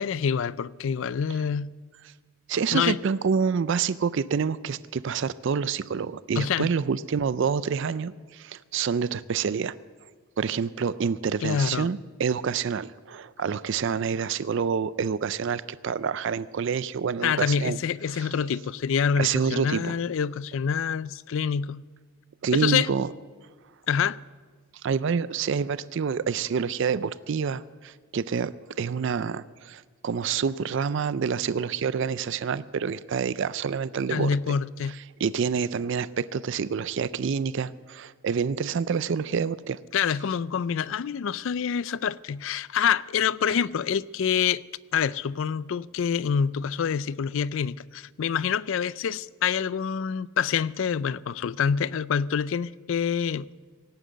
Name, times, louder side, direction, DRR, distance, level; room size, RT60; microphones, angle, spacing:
voice 1, 0.0-1.7 2.7-3.0 6.4-6.7 11.4-11.9 17.2-21.8 22.5-22.9 23.9-24.2 34.1-35.0 39.9-44.6 44.9-53.5, left 7 dB, 60° left, 0.3 m, -26 dB
voice 2, 2.5-9.7 10.4-17.8 18.1-18.3 19.2-19.9 22.4-23.1 24.8-34.6 34.8-39.8, right 6 dB, 55° right, 0.4 m, -27 dB
17.5 x 9.1 x 7.9 m
head